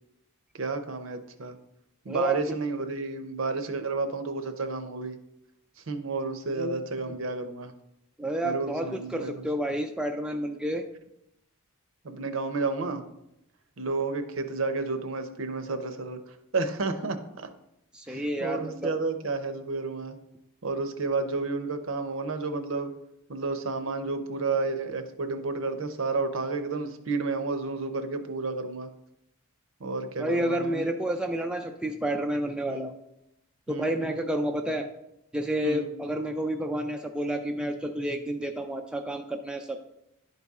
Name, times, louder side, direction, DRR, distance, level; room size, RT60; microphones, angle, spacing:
voice 1, 0.5-1.6 2.0-5.2 5.9-7.7 8.4-9.4 12.0-13.0 13.8-17.5 18.1-20.2 20.6-23.0 23.3-28.9 29.8-30.8 32.7-32.9 33.7-34.0 35.6-35.9, right 3 dB, 65° right, 8 dB, 0.7 m, -31 dB
voice 2, 2.1-2.4 6.5-6.7 8.2-10.8 17.9-18.9 30.2-32.9 33.7-34.9 35.3-39.8, right 1 dB, 5° right, 3 dB, 0.3 m, -30 dB
11.0 x 4.1 x 3.6 m, 0.83 s
head